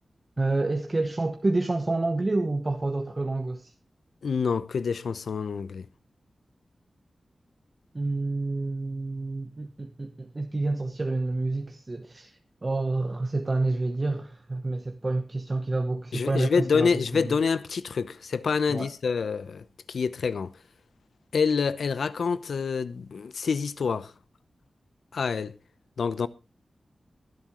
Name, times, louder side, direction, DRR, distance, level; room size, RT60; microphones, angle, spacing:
voice 1, 0.4-3.7 7.9-17.3 18.7-18.9, right 2 dB, 30° right, 1.0 m, -28 dB
voice 2, 4.2-5.9 16.1-20.5 21.3-24.1 25.1-25.5 26.0-26.3, left 5 dB, 90° left, 0.8 m, -27 dB
23.0 x 7.9 x 3.1 m
wide cardioid pair, 140°, 0 cm